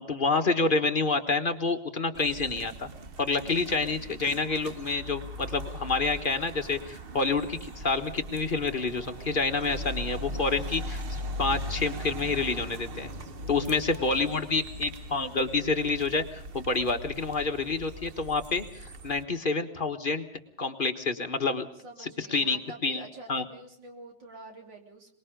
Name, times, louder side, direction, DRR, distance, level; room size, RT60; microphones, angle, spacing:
voice 1, 0.0-2.9 3.2-13.1 13.5-20.2 20.6-21.7 22.0-23.0 23.3-23.4, left 3 dB, 30° left, 6 dB, 1.4 m, -28 dB
sound 1, 2.1-19.2, equal, 40° right, 0.9 m, -39 dB
voice 2, 13.4-14.5 21.8-25.1, right 2 dB, 90° right, 2 dB, 3.9 m, -47 dB
23.5 x 21.0 x 5.2 m, 0.69 s
omnidirectional pair, 2.0 m